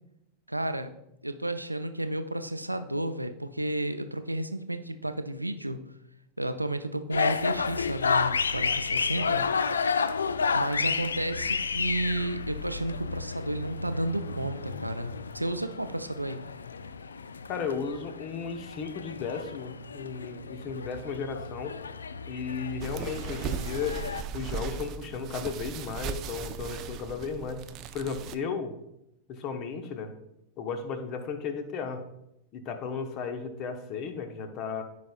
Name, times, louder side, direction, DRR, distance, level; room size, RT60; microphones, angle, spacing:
voice 1, 0.5-0.9 1.2-5.8 6.4-9.5 10.5-16.4, right 1 dB, 85° right, 9 dB, 0.5 m, -32 dB
sound 1, 7.1-24.2, left 5 dB, 70° left, 0.3 m, -31 dB
voice 2, 17.5-21.8 22.3-24.0 24.3-27.6 27.9-28.7 29.3-30.1 30.6-32.0 32.5-34.8, left 5 dB, 40° left, 7 dB, 1.0 m, -34 dB
sound 2, 22.8-28.4, right 8 dB, 35° right, 0.5 m, -37 dB
14.5 x 5.2 x 2.4 m, 0.83 s
figure-of-eight pair, 90°, 0 cm